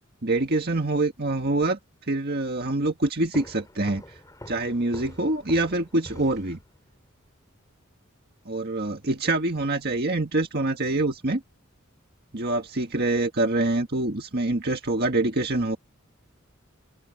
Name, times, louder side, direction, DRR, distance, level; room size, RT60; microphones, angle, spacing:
voice 1, 0.2-1.8 2.1-4.0 4.5-6.6 8.5-11.4 12.3-15.8, right 2 dB, 50° right, 1.7 m, -25 dB
sound 1, 3.3-7.0, left 1 dB, 15° left, 7.2 m, -45 dB
open air
head